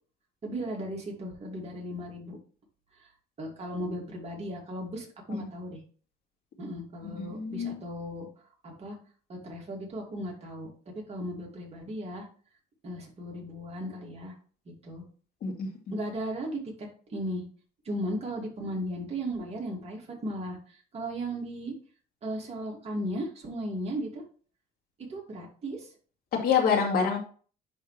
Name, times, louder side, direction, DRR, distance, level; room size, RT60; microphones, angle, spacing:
voice 1, 0.4-2.4 3.4-5.8 6.6-8.3 8.6-9.0 9.3-12.3 12.8-14.3 14.8-15.0 15.9-17.4 17.8-20.6 20.9-21.7 22.2-24.2 25.1-25.9, equal, 40° right, -1 dB, 2.5 m, -36 dB
voice 2, 7.2-7.8 15.4-15.7 26.3-27.2, left 6 dB, 65° left, 1 dB, 2.3 m, -26 dB
10.5 x 3.5 x 3.3 m, 0.42 s
cardioid pair, 110°, 17 cm